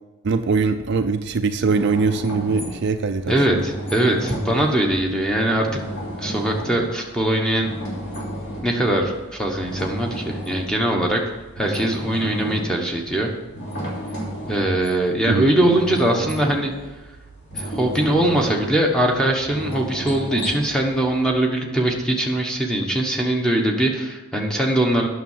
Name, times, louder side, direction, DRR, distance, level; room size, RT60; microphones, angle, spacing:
voice 1, 0.2-3.3 15.3-15.5, right 4 dB, 50° right, 8 dB, 0.4 m, -21 dB
sound 1, 1.4-21.3, equal, 50° left, 3.0 m, -33 dB
voice 2, 3.3-5.8 6.2-7.7 8.6-11.2 11.6-13.3 14.5-16.7 17.5-25.1, right 1 dB, 5° left, 1 dB, 1.1 m, -21 dB
9.2 x 6.5 x 7.3 m, 1.2 s
head